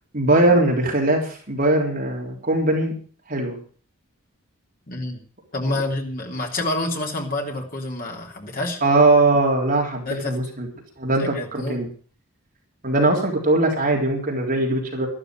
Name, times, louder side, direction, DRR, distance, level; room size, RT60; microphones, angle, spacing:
voice 1, 0.1-2.9 3.3-3.6 8.8-10.7 11.0-11.9 12.8-15.1, right 2 dB, 40° right, 0 dB, 3.7 m, -20 dB
voice 2, 4.9-5.2 5.5-8.8 10.1-10.3 11.2-11.8, left 2 dB, 40° left, 1 dB, 3.3 m, -28 dB
13.0 x 12.5 x 6.5 m, 0.43 s
head